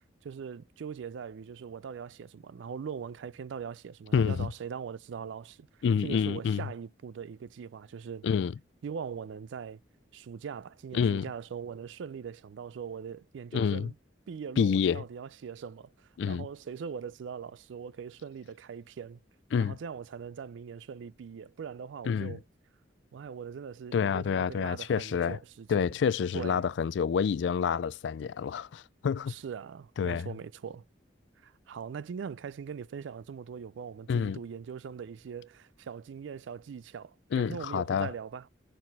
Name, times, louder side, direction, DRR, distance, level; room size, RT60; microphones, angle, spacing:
voice 1, 0.0-5.7 6.0-8.3 8.8-9.8 10.1-13.9 14.3-19.2 19.6-22.4 23.1-26.0 26.3-26.7 29.3-30.8 31.4-38.5, right 6 dB, 75° right, 0.3 m, -41 dB
voice 2, 4.1-4.5 5.8-6.6 8.2-8.5 10.9-11.2 13.5-13.9 14.6-15.0 16.2-16.5 19.5-19.8 22.1-22.3 23.9-25.4 25.7-29.3 30.0-30.3 34.1-34.4 37.3-38.1, left 6 dB, 65° left, 0.3 m, -28 dB
6.5 x 4.1 x 4.0 m
head